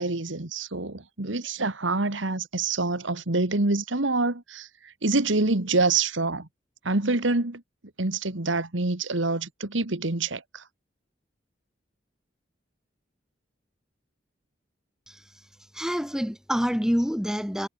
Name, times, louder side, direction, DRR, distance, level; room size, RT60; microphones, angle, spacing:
voice 1, 0.0-6.5 6.8-7.6 8.0-10.6, right 3 dB, 85° right, 2.0 m, -26 dB
voice 2, 15.7-17.7, equal, 5° right, 3.4 m, -27 dB
head